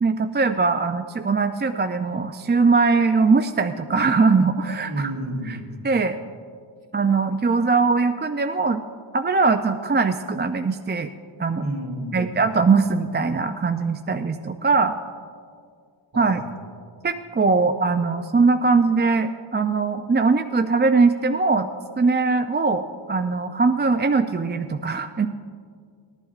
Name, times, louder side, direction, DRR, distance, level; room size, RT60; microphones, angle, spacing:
voice 1, 0.0-5.1 5.5-5.6 5.8-6.2 6.9-8.8 9.1-11.1 11.4-11.6 12.1-15.0 16.2-16.4 17.0-21.7 22.0-25.3, right 4 dB, 25° right, 7 dB, 0.4 m, -21 dB
voice 2, 4.8-5.6 11.6-12.3 16.1-16.5, right 1 dB, 45° right, -1 dB, 2.5 m, -30 dB
20.0 x 11.5 x 2.4 m, 2.1 s
wide cardioid pair, 70°, 48 cm